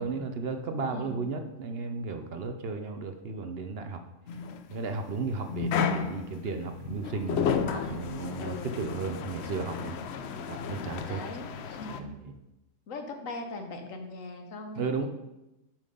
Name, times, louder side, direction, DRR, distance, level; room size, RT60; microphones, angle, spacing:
voice 1, 0.0-4.0 4.7-10.0 10.5-11.2 11.9-12.4 14.8-15.1, right 4 dB, 60° right, 7 dB, 0.8 m, -34 dB
voice 2, 0.9-1.3 7.4-8.8 11.1-12.2 12.9-15.1, left 2 dB, 85° left, 5 dB, 1.4 m, -41 dB
sound 1, 4.3-12.0, left 6 dB, 65° left, 0.8 m, -33 dB
7.3 x 5.7 x 5.3 m, 0.95 s
omnidirectional pair, 1.3 m